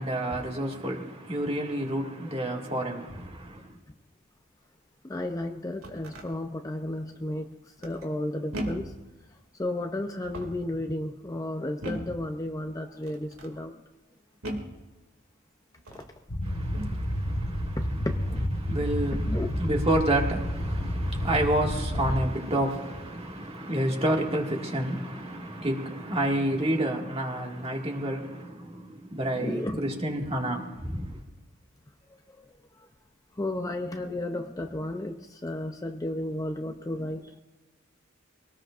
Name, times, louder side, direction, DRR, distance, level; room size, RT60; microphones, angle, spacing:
voice 1, 0.0-3.7 16.4-17.8 18.6-31.2, right 1 dB, 30° right, 2.0 m, -29 dB
voice 2, 5.0-9.0 9.5-13.8 15.9-16.0 17.8-18.9 19.3-19.5 29.4-29.8 32.3-32.9 33.4-37.3, left 1 dB, 15° left, 0.6 m, -33 dB
sound 1, 5.7-6.3 7.8-8.2 8.5-9.0 10.1-10.7 11.8-12.2 13.0-13.5 14.4-14.8 15.8-16.2 16.7-17.0 18.3-18.6 20.7-20.8 21.6-22.0 22.4-22.8, right 1 dB, 85° right, 2.5 m, -38 dB
sound 2, 16.3-22.3, equal, 45° left, 1.3 m, -30 dB
24.0 x 18.5 x 2.5 m
head